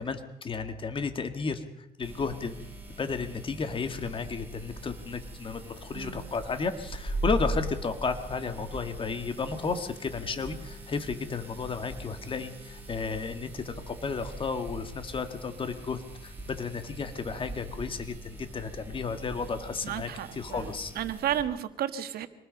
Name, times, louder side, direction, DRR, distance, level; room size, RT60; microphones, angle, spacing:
voice 1, 0.0-1.6 2.0-2.6 3.0-20.9, left 4 dB, 30° left, 9 dB, 2.0 m, -33 dB
sound 1, 2.0-21.4, right 1 dB, 10° right, 5.5 m, -40 dB
voice 2, 5.9-6.3 19.8-22.3, right 10 dB, 65° right, 10 dB, 1.6 m, -33 dB
26.0 x 20.0 x 5.4 m, 0.83 s
cardioid pair, 110°, 17 cm